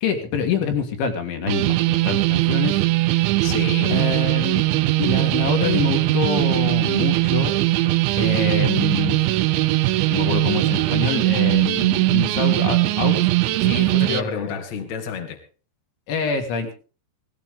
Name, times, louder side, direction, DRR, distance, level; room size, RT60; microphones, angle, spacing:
voice 1, 0.0-3.4 3.9-4.7 5.0-7.5 7.8-7.9 8.2-9.2 10.1-13.3 14.1-14.5 16.1-16.7, left 5 dB, 80° left, 5 dB, 4.3 m, -26 dB
sound 1, 1.5-14.2, right 18 dB, 80° right, 3.1 m, -20 dB
voice 2, 3.4-4.0 13.6-15.4, left 6 dB, 45° left, 3 dB, 3.2 m, -29 dB
18.0 x 17.0 x 3.7 m, 0.36 s
omnidirectional pair, 5.3 m